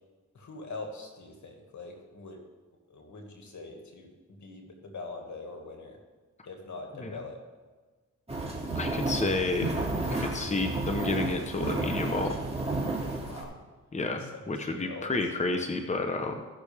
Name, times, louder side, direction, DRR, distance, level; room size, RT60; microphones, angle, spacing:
voice 1, 0.3-2.4 2.9-4.1 4.4-6.0 6.4-7.4 13.2-13.6 14.2-14.3 14.6-15.1, left 3 dB, 65° left, 2 dB, 2.1 m, -43 dB
sound 1, 8.3-13.4, right 2 dB, 20° right, 2.7 m, -32 dB
voice 2, 8.7-9.7 10.1-12.4 13.9-16.5, left 3 dB, 20° left, 4 dB, 1.0 m, -30 dB
16.0 x 6.3 x 3.6 m, 1.3 s
cardioid pair, 55°, 31 cm